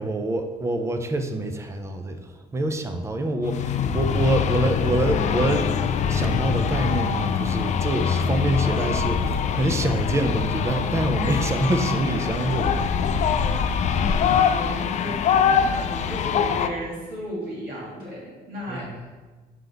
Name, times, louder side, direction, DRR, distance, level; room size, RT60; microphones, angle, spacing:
voice 1, 0.0-5.7 6.1-12.8 18.7-19.0, right 1 dB, 15° right, 6 dB, 0.5 m, -26 dB
sound 1, 3.4-16.7, left 7 dB, 45° left, 0.4 m, -23 dB
voice 2, 13.9-19.1, equal, 60° right, -6 dB, 1.9 m, -34 dB
7.5 x 3.7 x 3.4 m, 1.3 s
cardioid pair, 110°, 17 cm